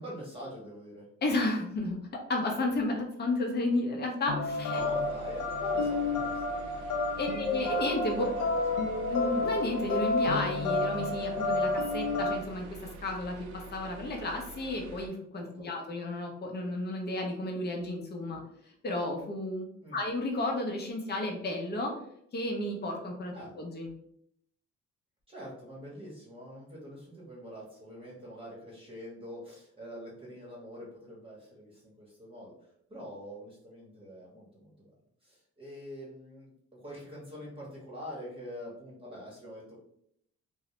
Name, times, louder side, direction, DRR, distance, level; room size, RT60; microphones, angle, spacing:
voice 1, 0.0-1.1 4.7-7.3 8.1-8.9 15.4-15.7 19.8-20.0 23.3-23.5 25.3-32.5 32.9-34.9 35.2-39.8, equal, 20° right, -4 dB, 0.9 m, -45 dB
voice 2, 1.2-2.0 2.3-4.8 7.2-8.3 9.1-13.4 13.7-19.7 19.9-21.9 22.3-23.9, left 2 dB, 35° left, 1 dB, 0.7 m, -32 dB
sound 1, 4.3-12.4, left 3 dB, 70° left, 0.5 m, -30 dB
sound 2, 4.8-15.1, right 4 dB, 90° right, 0.5 m, -47 dB
2.3 x 2.0 x 2.9 m, 0.71 s
cardioid pair, 90°, 30 cm